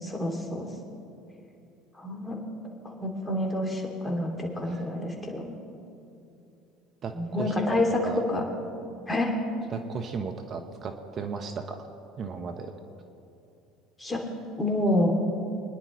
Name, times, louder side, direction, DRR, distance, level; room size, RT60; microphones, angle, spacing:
voice 1, 0.0-0.7 2.0-2.4 2.8-5.5 7.2-8.0 8.3-8.4 9.1-9.3 14.0-14.2 14.6-15.1, left 1 dB, 15° left, 0 dB, 2.6 m, -28 dB
voice 2, 7.0-8.2 9.7-11.9 12.2-12.7, right 5 dB, 45° right, 6 dB, 1.0 m, -35 dB
24.5 x 10.5 x 3.2 m, 2.8 s
hypercardioid pair, 75°, 0 cm